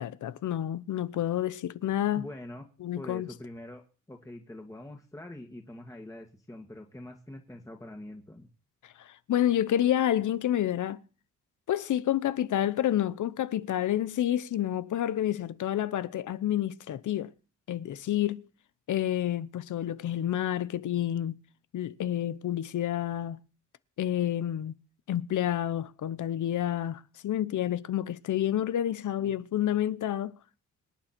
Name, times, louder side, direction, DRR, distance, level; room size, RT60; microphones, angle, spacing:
voice 1, 0.0-2.3 2.8-3.3 9.0-11.0 11.7-17.3 17.7-18.4 18.9-21.3 21.7-23.4 24.0-24.7 25.1-30.4, left 11 dB, 75° left, 0.9 m, -29 dB
voice 2, 2.1-2.6 2.9-8.5 29.2-29.3, left 1 dB, 10° left, 2.0 m, -44 dB
25.5 x 9.1 x 4.4 m
cardioid pair, 85°, 31 cm